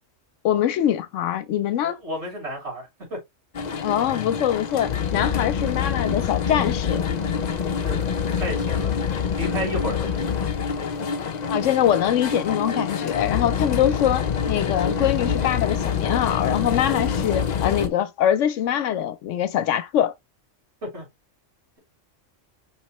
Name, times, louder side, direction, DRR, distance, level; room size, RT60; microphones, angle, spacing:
voice 1, 0.4-2.0 3.8-7.0 11.5-20.1, left 10 dB, 80° left, 0.9 m, -23 dB
voice 2, 1.8-3.2 7.8-10.3 13.5-13.8 20.8-21.1, equal, 65° right, 3.6 m, -33 dB
sound 1, 3.5-17.9, left 7 dB, 50° left, 0.5 m, -26 dB
5.2 x 3.2 x 2.9 m
omnidirectional pair, 1.3 m